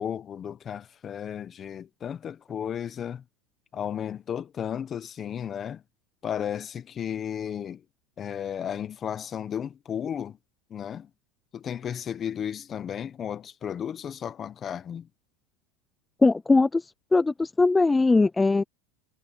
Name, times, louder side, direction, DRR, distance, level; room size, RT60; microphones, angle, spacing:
voice 1, 0.0-3.2 3.7-5.8 6.2-7.8 8.2-10.4 10.7-11.1 11.5-15.1, left 9 dB, 30° left, 1.0 m, -34 dB
voice 2, 16.2-18.6, left 3 dB, 10° left, 0.4 m, -21 dB
supercardioid pair, 130°, 0 cm